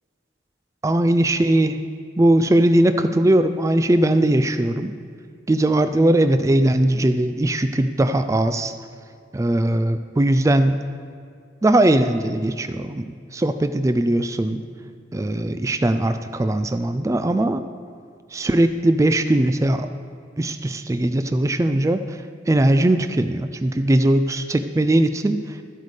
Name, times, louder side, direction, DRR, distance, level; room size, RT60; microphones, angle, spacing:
voice 1, 0.8-1.8 2.2-4.9 5.5-8.7 9.3-10.8 11.6-14.6 15.1-17.6 18.3-19.9 20.4-25.6, right 1 dB, 15° right, 9 dB, 0.3 m, -19 dB
12.5 x 8.1 x 4.9 m, 2.2 s
head